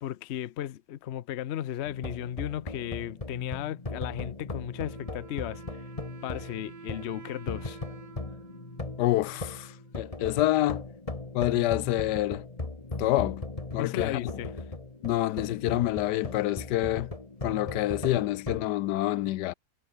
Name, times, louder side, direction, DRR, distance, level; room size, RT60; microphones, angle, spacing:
voice 1, 0.0-5.6 6.2-7.8 13.8-14.5, left 12 dB, 55° left, 0.7 m, -35 dB
sound 1, 1.8-18.7, left 2 dB, 20° left, 2.0 m, -38 dB
Wind instrument woodwind instrument, 4.7-10.2, right 6 dB, 85° right, 2.6 m, -50 dB
voice 2, 9.0-10.8 11.3-12.5 13.0-13.4 13.7-14.2 15.0-17.1 17.4-19.5, left 15 dB, 85° left, 1.2 m, -27 dB
omnidirectional pair, 1.8 m